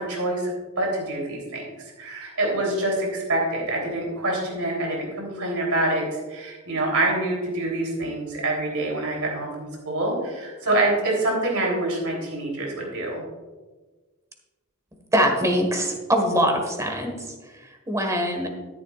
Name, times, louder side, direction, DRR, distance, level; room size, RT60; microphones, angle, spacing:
voice 1, 0.0-13.2, right 2 dB, 70° right, -1 dB, 3.5 m, -26 dB
voice 2, 15.1-18.5, equal, 15° right, 3 dB, 1.6 m, -23 dB
12.5 x 11.0 x 2.5 m, 1.3 s
head